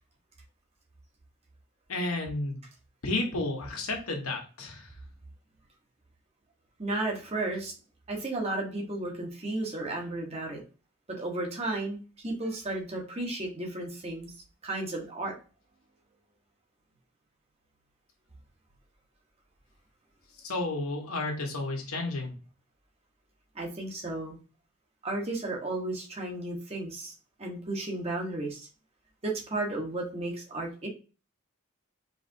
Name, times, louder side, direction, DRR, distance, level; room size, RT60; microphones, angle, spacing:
voice 1, 1.9-2.6 3.0-4.9 20.4-22.3, left 2 dB, 85° left, 1 dB, 1.4 m, -32 dB
voice 2, 6.8-7.7 8.1-10.6 11.1-14.3 14.6-15.4 23.5-24.4 25.0-27.1 27.4-28.7 29.2-30.9, right 2 dB, 30° right, 0 dB, 1.2 m, -33 dB
4.8 x 3.3 x 2.7 m, 0.35 s
head